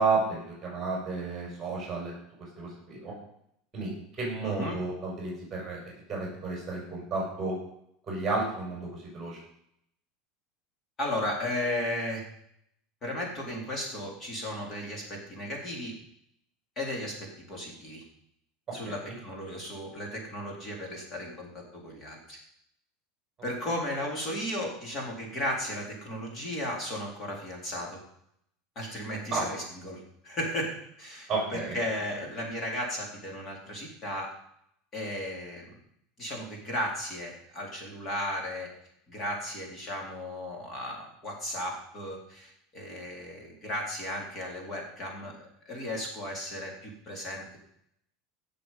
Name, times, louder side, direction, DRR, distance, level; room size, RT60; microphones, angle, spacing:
voice 1, 0.0-2.1 2.6-3.1 3.7-5.8 6.1-7.6 8.1-8.9 9.1-9.4 19.0-19.1 29.3-29.5 31.3-31.8, right 3 dB, 15° right, -3 dB, 6.1 m, -31 dB
voice 2, 4.4-4.8 11.0-12.2 13.0-15.9 16.8-18.0 18.7-22.4 23.4-28.0 28.8-34.3 34.9-35.8 36.2-38.7 39.1-45.4 45.7-47.6, left 1 dB, 25° left, -1 dB, 3.7 m, -35 dB
16.5 x 6.9 x 5.6 m, 0.72 s
supercardioid pair, 160°, 0 cm